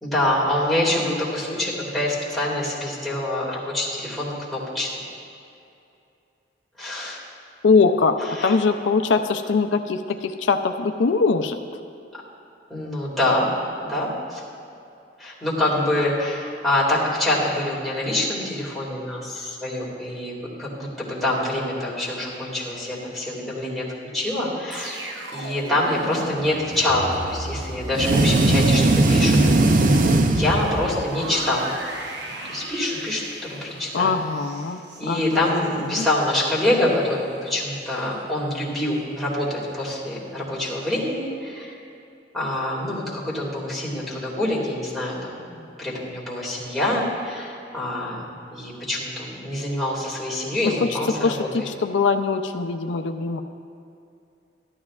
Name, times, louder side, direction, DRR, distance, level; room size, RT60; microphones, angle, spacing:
voice 1, 0.0-4.9 6.8-7.2 8.4-8.5 12.7-13.5 13.8-14.4 15.2-20.3 20.6-23.8 24.1-28.8 29.1-29.4 29.7-29.8 30.3-31.7 32.5-33.2 33.5-34.1 35.0-39.5 39.7-41.8 42.3-48.2 48.5-51.3 51.6-51.7, left 1 dB, ahead, -8 dB, 2.2 m, -25 dB
voice 2, 7.6-11.6 33.9-36.1 50.6-53.4, left 4 dB, 85° left, 7 dB, 0.5 m, -22 dB
sound 1, 24.7-35.8 36.1-36.4, right 1 dB, 70° right, 1.1 m, -36 dB
sound 2, 27.9-31.1, right 2 dB, 50° right, 0.5 m, -18 dB
14.0 x 12.0 x 2.4 m, 2.6 s
head